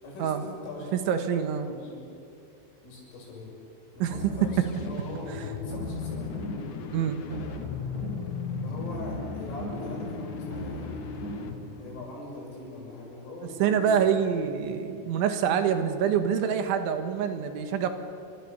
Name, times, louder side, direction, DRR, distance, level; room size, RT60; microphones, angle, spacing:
voice 1, 0.0-1.1 1.7-2.1 2.8-3.5 3.9-6.3 8.6-11.0 11.8-14.1, left 2 dB, 80° left, -1 dB, 9.4 m, -41 dB
voice 2, 1.1-1.7 4.0-4.2 6.9-7.2 13.6-17.9, right 8 dB, 75° right, 7 dB, 3.8 m, -26 dB
sound 1, 3.9-5.2 5.5-6.8 7.1-8.4 8.7-11.6, right 1 dB, 25° right, 4.9 m, -39 dB
sound 2, 4.4-12.5, left 5 dB, 60° left, 2.1 m, -37 dB
29.5 x 26.5 x 7.0 m, 2.5 s
omnidirectional pair, 5.7 m